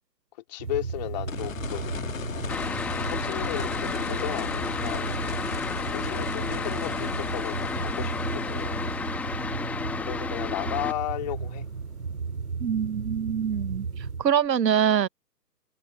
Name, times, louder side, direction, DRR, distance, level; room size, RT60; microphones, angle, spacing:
voice 1, 0.5-2.0 3.0-5.2 5.9-8.9 10.0-11.6, left 15 dB, 25° left, 3.1 m, -35 dB
sound 1, 0.6-14.3, right 5 dB, 65° right, 5.8 m, -34 dB
sound 2, 1.3-12.2 14.5-14.6, left 7 dB, 55° left, 1.7 m, -37 dB
sound 3, 2.5-10.9, left 4 dB, 5° left, 1.3 m, -32 dB
voice 2, 12.6-13.9 14.2-15.1, right 8 dB, 85° right, 0.8 m, -24 dB
figure-of-eight pair, 150°, 49 cm